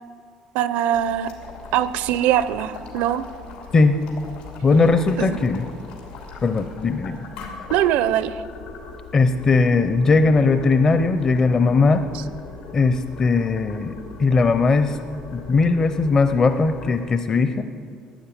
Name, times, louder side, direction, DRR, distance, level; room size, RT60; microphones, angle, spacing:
voice 1, 0.5-1.3 1.7-3.2 5.2-5.4 7.7-8.4, right 11 dB, 80° right, 15 dB, 0.6 m, -22 dB
Boiling, 0.9-17.0, left 4 dB, 85° left, 3.0 m, -40 dB
voice 2, 4.6-5.7 6.4-7.2 9.1-12.1 12.7-13.9 14.2-15.0 15.3-17.6, left 4 dB, 25° left, 9 dB, 0.6 m, -19 dB
12.5 x 9.8 x 9.0 m, 2.2 s
cardioid pair, 155°, 2 cm